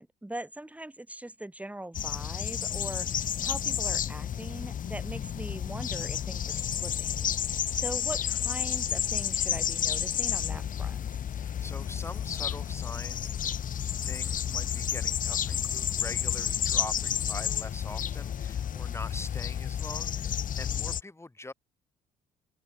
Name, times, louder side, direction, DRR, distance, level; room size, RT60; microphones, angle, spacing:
voice 1, 0.0-11.1, right 1 dB, 10° right, 1.9 m, -41 dB
sound 1, 1.9-21.0, left 9 dB, 50° left, 1.3 m, -31 dB
voice 2, 11.4-13.5 14.0-21.5, left 2 dB, 15° left, 4.0 m, -43 dB
open air
hypercardioid pair, 55°, 17 cm